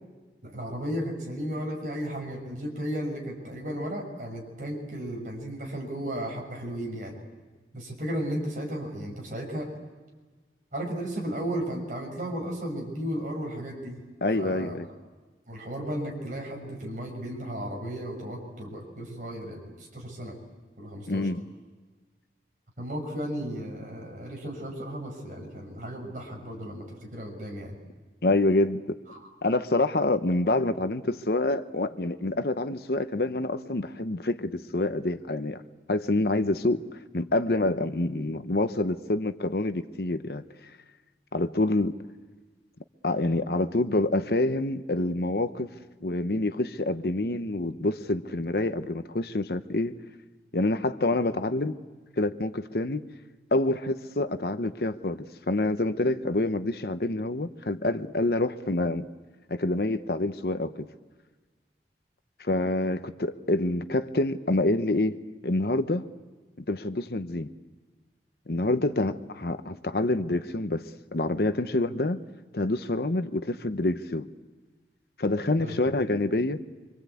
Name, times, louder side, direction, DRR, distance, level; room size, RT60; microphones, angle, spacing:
voice 1, 0.4-7.2 7.7-9.7 10.7-14.0 14.3-14.7 15.5-20.3 20.8-21.3 22.8-27.7 29.1-29.3 75.6-75.9, equal, 45° right, 0 dB, 6.7 m, -34 dB
voice 2, 14.2-14.9 21.1-21.4 28.2-29.0 29.4-35.6 35.9-36.8 37.1-40.4 41.3-42.0 43.0-45.7 46.0-49.9 50.5-51.7 52.2-53.0 53.5-55.2 55.5-59.1 59.5-60.9 62.4-66.1 66.6-67.5 68.5-72.2 72.5-74.3 75.2-76.6, left 2 dB, 60° left, 10 dB, 0.9 m, -27 dB
25.5 x 25.0 x 8.5 m, 1.4 s
head